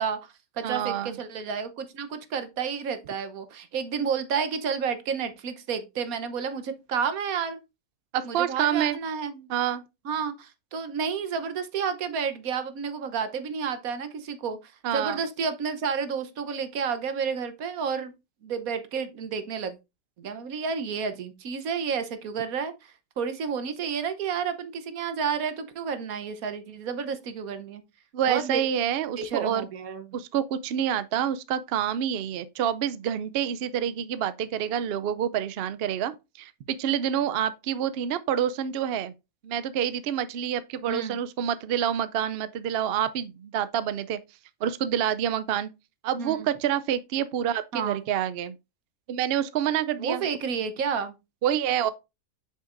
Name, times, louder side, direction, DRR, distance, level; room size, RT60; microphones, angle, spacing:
voice 1, 0.0-7.6 8.2-9.5 10.0-18.1 18.4-19.7 20.2-27.8 28.3-28.6 29.2-30.1 40.9-41.2 46.2-46.5 47.7-48.0 50.0-51.1, right 6 dB, 85° right, 1.4 m, -31 dB
voice 2, 0.6-1.2 8.1-9.0 9.5-9.8 14.8-15.2 28.1-29.7 30.1-36.1 36.4-39.1 39.4-44.2 44.6-45.7 46.0-48.5 49.1-50.2 51.4-51.9, right 9 dB, 65° right, 0.6 m, -27 dB
7.8 x 6.5 x 2.5 m
omnidirectional pair, 1.5 m